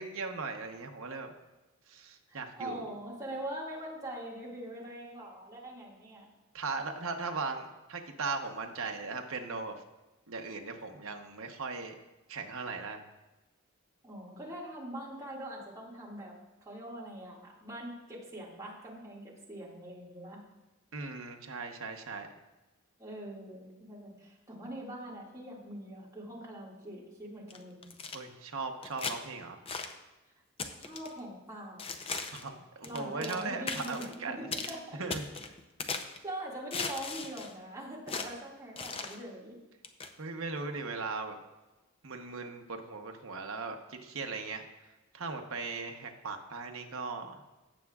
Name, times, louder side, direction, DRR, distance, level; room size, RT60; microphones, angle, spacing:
voice 1, 0.0-1.3 1.9-2.9 6.5-9.7 10.3-11.9 12.3-13.0 20.9-22.3 28.1-29.6 32.3-34.5 35.0-35.3 40.2-41.4 42.0-47.4, right 4 dB, 70° right, 4 dB, 1.0 m, -38 dB
voice 2, 2.3-6.3 14.0-20.4 23.0-27.8 30.7-31.8 32.8-35.0 36.2-39.6, right 1 dB, 15° right, -5 dB, 2.1 m, -43 dB
sound 1, 27.5-28.2 28.8-29.2 29.7-29.9 30.6-31.1 31.8-32.5 32.8-33.4 33.7-34.1 34.5-34.7 35.1-36.2 36.7-37.5 38.1-38.3 38.8-39.2 39.8-40.1, left 4 dB, 25° left, 0.6 m, -37 dB
16.0 x 7.0 x 2.4 m, 1.1 s
head